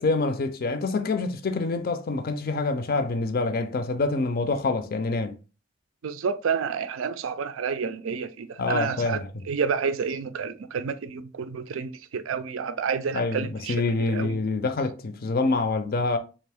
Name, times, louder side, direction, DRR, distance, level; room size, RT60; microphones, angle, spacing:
voice 1, 0.0-5.4 8.6-9.4 13.1-16.2, left 3 dB, 50° left, 0.5 m, -26 dB
voice 2, 6.0-13.8 14.1-14.3, right 6 dB, 85° right, 0.4 m, -29 dB
3.4 x 2.5 x 3.4 m
head